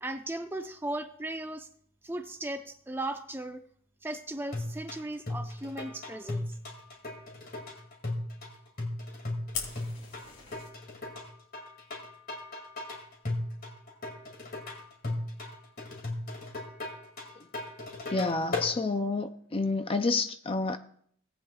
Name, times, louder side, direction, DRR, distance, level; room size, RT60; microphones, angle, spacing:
voice 1, 0.0-1.7 2.0-3.6 4.0-6.6, right 1 dB, 10° right, 0.7 m, -37 dB
sound 1, 4.5-18.7, left 2 dB, 45° left, 2.3 m, -37 dB
Fire, 9.5-10.7, left 6 dB, 65° left, 3.8 m, -39 dB
voice 2, 18.1-20.8, left 3 dB, 25° left, 0.4 m, -29 dB
18.0 x 8.8 x 2.4 m
head